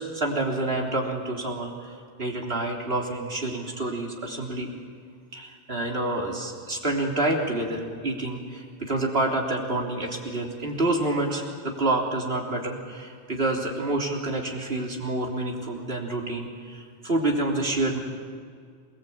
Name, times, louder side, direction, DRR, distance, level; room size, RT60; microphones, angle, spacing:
voice 1, 0.0-4.7 5.3-18.0, right 2 dB, 65° right, 0 dB, 3.8 m, -28 dB
27.5 x 20.0 x 8.7 m, 2.1 s
omnidirectional pair, 1.1 m